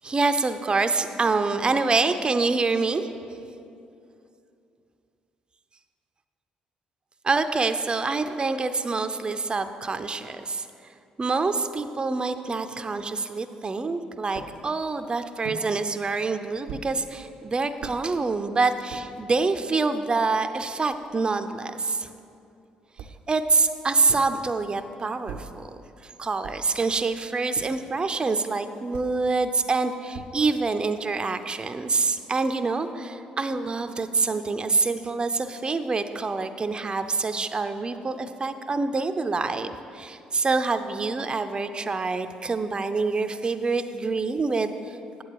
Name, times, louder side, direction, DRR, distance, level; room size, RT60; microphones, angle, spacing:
voice 1, 0.0-3.1 7.2-10.7 11.2-22.1 23.3-25.7 26.0-45.2, right 3 dB, 30° right, 9 dB, 0.5 m, -26 dB
sound 1, 14.3-14.6 15.4-15.7 16.7-16.9 17.8-18.0 18.7-19.1 19.8-19.9 20.1-21.2 23.0-23.3 24.1-24.4 25.3-25.6 26.4-26.8 27.5-27.9 28.9-29.2 30.1-30.6, right 6 dB, 80° right, 0.5 m, -41 dB
8.6 x 7.8 x 4.7 m, 2.6 s
hypercardioid pair, 55°, 3 cm